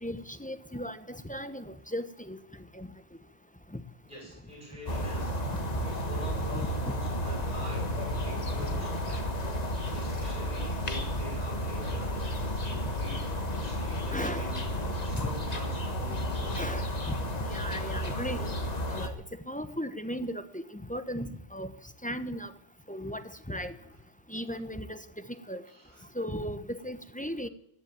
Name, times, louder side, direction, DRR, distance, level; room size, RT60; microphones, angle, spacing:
voice 1, 0.0-2.4 2.7-2.9 3.7-3.8 14.1-14.5 15.1-15.3 16.5-18.5 18.9-19.1 19.5-21.7 22.0-22.5 22.9-23.8 24.3-25.0 25.5-25.6 26.1-27.5, equal, 10° left, 10 dB, 0.7 m, -36 dB
voice 2, 4.0-5.4 5.8-9.4 9.9-12.2 12.6-14.7 15.0-16.7 25.7-26.0, right 1 dB, 45° right, -4 dB, 6.8 m, -45 dB
sound 1, 4.9-19.1, equal, 40° left, 1.5 m, -32 dB
15.5 x 10.5 x 8.9 m, 0.77 s
omnidirectional pair, 1.1 m